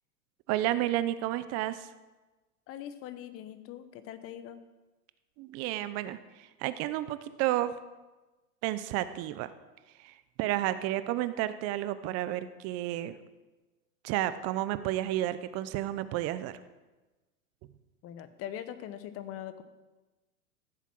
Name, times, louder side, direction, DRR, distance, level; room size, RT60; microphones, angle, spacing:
voice 1, 0.5-1.9 5.4-7.7 8.6-9.5 10.0-13.2 14.0-16.6, right 14 dB, 30° right, 13 dB, 0.8 m, -31 dB
voice 2, 2.7-4.6 18.0-19.6, left 11 dB, 30° left, 12 dB, 1.0 m, -42 dB
15.0 x 8.1 x 6.1 m, 1.2 s
hypercardioid pair, 120°, 46 cm